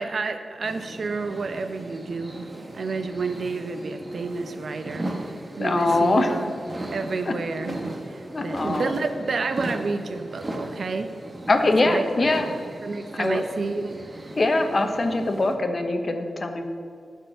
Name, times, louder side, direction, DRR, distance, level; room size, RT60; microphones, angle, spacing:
voice 1, 0.0-2.4 2.7-5.3 5.6-6.5 6.9-11.1 11.8-12.4 12.8-13.9, right 4 dB, 65° right, 8 dB, 0.7 m, -30 dB
sound 1, 0.6-15.6, right 1 dB, 35° right, 1.4 m, -37 dB
voice 2, 5.6-6.3 7.3-7.4 8.3-8.9 11.5-12.5 13.1-13.4 14.4-16.7, left 2 dB, 45° left, 6 dB, 1.0 m, -22 dB
11.5 x 4.7 x 7.6 m, 2.2 s
cardioid pair, 70°, 0 cm